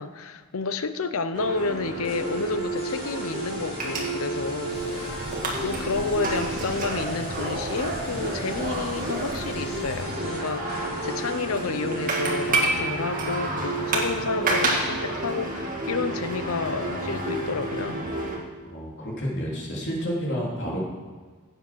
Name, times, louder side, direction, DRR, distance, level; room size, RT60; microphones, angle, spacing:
voice 1, 0.0-18.0, left 4 dB, 80° left, 11 dB, 0.7 m, -30 dB
sound 1, 1.3-18.4, right 2 dB, 40° right, 2.1 m, -29 dB
sound 2, 2.0-12.5, left 1 dB, 30° left, 4.4 m, -43 dB
Bird, 4.7-10.0, right 1 dB, 60° right, 1.5 m, -41 dB
voice 2, 18.7-20.8, equal, 55° left, -3 dB, 3.5 m, -30 dB
16.5 x 8.0 x 6.2 m, 1.4 s
head